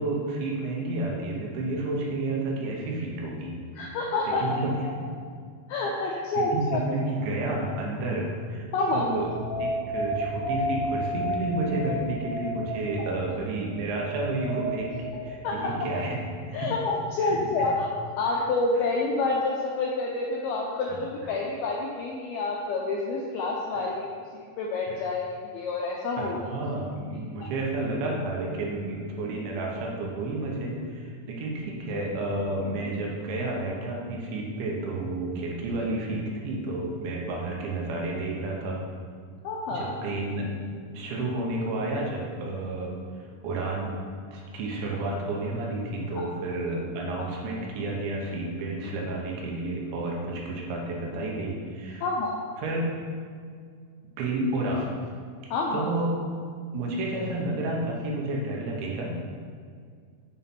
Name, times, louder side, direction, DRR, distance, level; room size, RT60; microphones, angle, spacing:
voice 1, 0.0-3.6 4.3-4.7 5.0-5.1 6.1-8.7 8.9-9.3 9.6-16.2 16.5-16.7 17.2-17.7 18.3-18.5 23.7-23.9 24.9-25.0 26.2-38.8 39.7-40.5 40.9-42.9 43.4-43.9 44.3-52.1 52.6-52.9 54.2-54.9 55.7-56.2 56.7-59.4, right 2 dB, 80° right, -1 dB, 3.5 m, -31 dB
voice 2, 3.8-4.4 5.7-6.8 8.7-9.1 15.4-15.7 16.5-24.1 24.3-26.3 39.4-40.0 52.0-52.3 55.5-55.9, left 3 dB, 85° left, -2 dB, 2.2 m, -28 dB
sound 1, 9.0-15.5, equal, 55° right, 3.5 m, -32 dB
7.6 x 7.1 x 4.4 m, 2.1 s
omnidirectional pair, 5.3 m